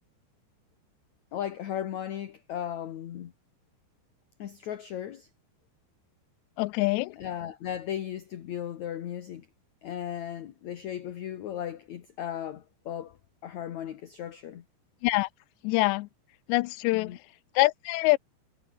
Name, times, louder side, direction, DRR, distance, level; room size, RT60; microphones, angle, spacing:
voice 1, 1.3-3.3 4.4-5.3 7.2-9.5 9.8-13.2 13.4-14.6 16.9-17.2, left 10 dB, 60° left, 2.0 m, -36 dB
voice 2, 6.6-7.2 15.0-15.3 15.6-16.1 16.5-17.1 17.6-18.2, left 22 dB, 85° left, 2.6 m, -24 dB
omnidirectional pair, 5.2 m